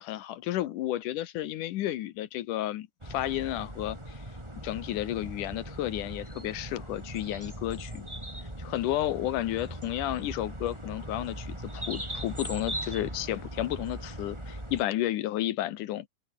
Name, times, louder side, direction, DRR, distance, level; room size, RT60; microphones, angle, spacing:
voice 1, 0.0-4.2 4.6-8.1 8.6-16.1, left 13 dB, 75° left, 2.4 m, -32 dB
sound 1, 3.0-14.8, right 1 dB, 10° right, 5.2 m, -40 dB
omnidirectional pair, 3.8 m